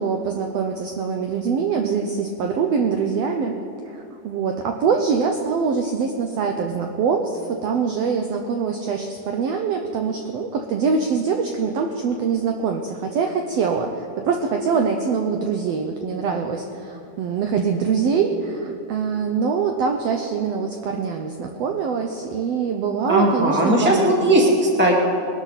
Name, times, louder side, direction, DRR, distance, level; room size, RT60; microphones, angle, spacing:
voice 1, 0.0-3.6 3.8-24.5, right 5 dB, 80° right, 4 dB, 1.5 m, -24 dB
voice 2, 23.1-25.1, right 1 dB, 5° right, -2 dB, 1.4 m, -18 dB
21.5 x 12.0 x 4.1 m, 2.7 s
omnidirectional pair, 3.8 m